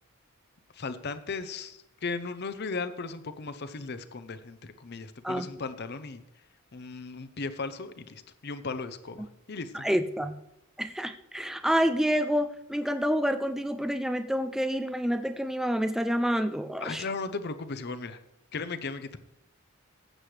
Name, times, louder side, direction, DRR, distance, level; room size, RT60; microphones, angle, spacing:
voice 1, 0.7-6.2 6.7-9.9 16.8-18.2 18.5-19.2, left 4 dB, 50° left, 12 dB, 0.7 m, -36 dB
voice 2, 9.7-10.4 10.8-17.1, equal, ahead, 9 dB, 0.3 m, -28 dB
15.0 x 8.1 x 3.3 m, 0.83 s
head